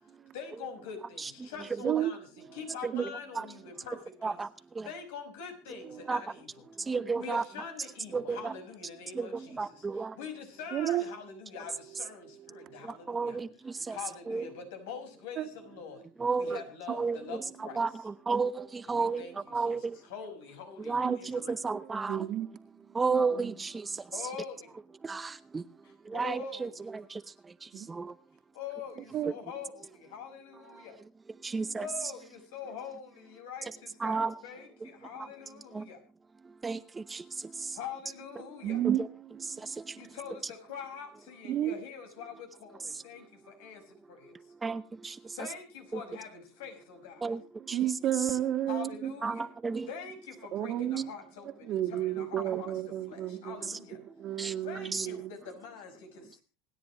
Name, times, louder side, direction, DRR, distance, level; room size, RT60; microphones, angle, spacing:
voice 1, 0.3-4.4 4.8-6.6 7.1-13.4 13.9-16.0 16.4-17.8 18.9-19.8 20.1-21.6 24.1-24.7 25.8-26.8 28.5-31.0 31.8-36.0 37.7-38.8 40.0-44.5 45.3-47.3 48.7-49.5 49.9-54.0 54.6-56.4, left 6 dB, 80° left, 5.6 m, -44 dB
voice 2, 6.9-7.4 8.1-8.5 9.1-10.1 12.8-14.0 14.3-14.5 16.2-16.6 16.9-19.2 19.5-20.0 20.8-22.3 22.9-23.9 25.0-25.6 26.1-27.2 27.9-28.1 31.4-31.9 34.0-34.3 34.8-34.9 35.7-35.8 36.6-37.2 38.8-39.0 44.6-45.2 45.9-46.0 47.2-47.4 47.7-47.8 48.2-48.3 49.2-49.9 53.6-53.8 54.4-54.5 54.9-55.1, right 4 dB, 15° right, 0.8 m, -32 dB
voice 3, 10.7-11.0 12.5-13.0 15.4-15.5 21.0-21.5 22.1-23.5 23.9-24.0 27.7-27.9 29.1-29.3 31.5-31.7 38.6-39.0 39.5-39.7 41.4-41.7 47.7-49.1 50.5-51.1 51.6-53.7 54.2-55.3, right 12 dB, 45° right, 2.0 m, -32 dB
27.0 x 10.0 x 3.1 m
supercardioid pair, 125°, 0 cm